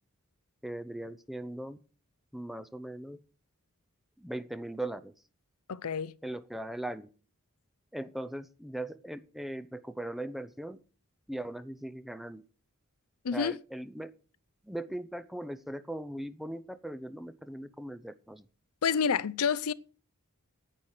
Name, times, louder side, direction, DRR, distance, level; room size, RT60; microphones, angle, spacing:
voice 1, 0.6-1.8 2.3-3.2 4.2-5.1 6.2-7.1 7.9-10.8 11.3-12.4 13.3-14.1 14.6-18.4, right 1 dB, ahead, 0.6 m, -39 dB
voice 2, 5.7-6.1 13.2-13.6 18.8-19.7, left 6 dB, 80° left, 0.5 m, -28 dB
9.9 x 9.0 x 6.4 m
head